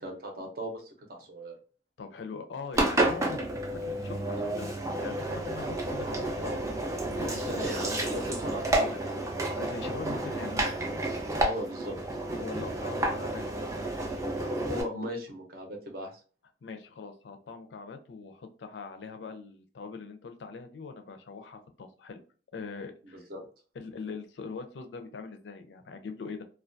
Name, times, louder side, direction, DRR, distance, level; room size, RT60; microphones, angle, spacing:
voice 1, 0.0-1.5 7.4-9.2 11.4-12.0 14.6-16.1 23.0-23.4, equal, 55° right, 2 dB, 0.6 m, -37 dB
voice 2, 2.0-6.7 7.0-8.0 9.5-10.8 12.4-13.4 16.6-22.2 22.5-23.2 23.7-26.4, left 4 dB, 80° left, 7 dB, 0.4 m, -42 dB
Engine, 2.7-14.8, right 1 dB, 20° right, 0.4 m, -31 dB
2.2 x 2.2 x 2.5 m, 0.39 s
head